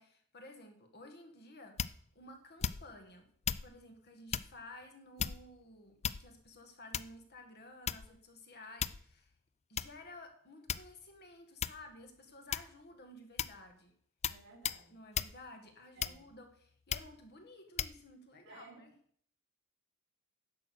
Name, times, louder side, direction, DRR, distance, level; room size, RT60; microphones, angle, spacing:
voice 1, 0.0-1.8 2.1-3.3 3.6-9.3 9.7-13.9 14.9-18.9, left 2 dB, 45° left, 5 dB, 2.0 m, -54 dB
sound 1, 1.8-2.1 2.6-3.0 3.4-3.7 4.3-4.5 5.2-5.6 6.0-6.5 6.9-7.2 7.9-8.2 8.8-9.1 9.8-9.9 10.7-11.1 11.6-11.9 12.5-12.9 13.4-13.6 14.2-14.4 14.6-14.8 15.1-15.4 16.0-16.4 16.9-17.1 17.8-18.0, left 8 dB, 30° left, 0.4 m, -36 dB
voice 2, 14.3-15.0 16.0-16.3 18.4-18.8, right 4 dB, 55° right, 2 dB, 3.0 m, -57 dB
11.0 x 7.6 x 6.5 m, 0.62 s
head